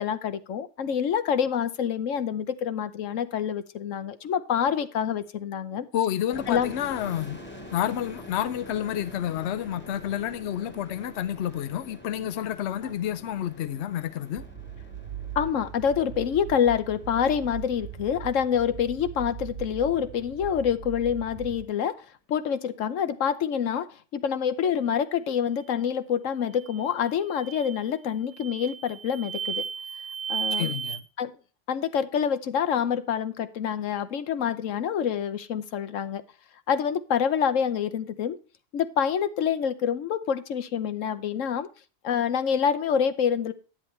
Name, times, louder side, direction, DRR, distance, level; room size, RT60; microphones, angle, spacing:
voice 1, 0.0-5.9 6.5-6.7 12.8-13.0 15.4-22.0 22.3-23.9 24.1-29.6 30.3-30.7 31.2-31.3 31.7-36.2 36.7-38.4 38.7-41.7 42.0-43.5, left 8 dB, 85° left, 1.2 m, -27 dB
voice 2, 5.9-7.4 7.7-14.4 30.5-31.0, left 11 dB, 65° left, 0.9 m, -29 dB
sound 1, 6.3-19.8, equal, 10° left, 1.7 m, -46 dB
sound 2, 14.3-21.6, right 10 dB, 45° right, 0.8 m, -40 dB
sound 3, 26.5-26.8 27.3-27.8 28.3-31.0, right 7 dB, 75° right, 1.4 m, -34 dB
10.5 x 9.7 x 3.2 m
omnidirectional pair, 1.3 m